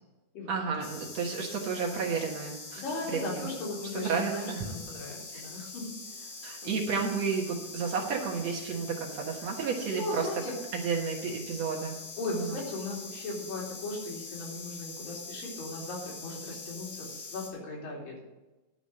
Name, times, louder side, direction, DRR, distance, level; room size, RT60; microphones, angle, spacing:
voice 1, 0.5-2.8 3.1-3.5 3.9-4.7 5.3-5.4 6.4-10.3 10.7-12.0 12.3-12.6, right 5 dB, 60° right, 0 dB, 2.2 m, -32 dB
sound 1, 0.8-17.5, left 3 dB, 55° left, 2.2 m, -44 dB
voice 2, 2.8-5.9 6.2-6.3 6.6-6.9 9.9-10.5 12.2-18.2, left 2 dB, 85° left, -3 dB, 4.6 m, -37 dB
11.5 x 5.1 x 7.6 m, 1.1 s
omnidirectional pair, 3.9 m